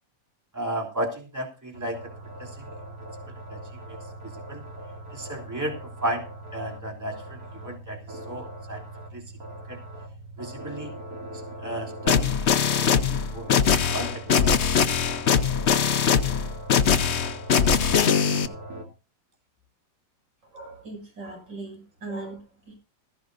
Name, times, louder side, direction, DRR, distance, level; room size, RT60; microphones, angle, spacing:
voice 1, 0.5-2.0 2.4-2.5 3.5-3.6 3.9-4.0 4.5-4.6 5.1-5.7 6.0-6.2 6.5-8.0 8.3-8.8 9.1-9.2 9.7-9.8 10.4-10.9 11.6-14.7, right 1 dB, 10° right, 1 dB, 3.1 m, -33 dB
sound 1, 1.7-18.8, right 1 dB, 50° right, 3.1 m, -40 dB
sound 2, 12.1-18.5, left 7 dB, 50° left, 0.9 m, -21 dB
voice 2, 20.5-22.7, right 2 dB, 85° right, 1 dB, 7.5 m, -39 dB
16.0 x 15.5 x 2.6 m, 0.32 s
omnidirectional pair, 2.0 m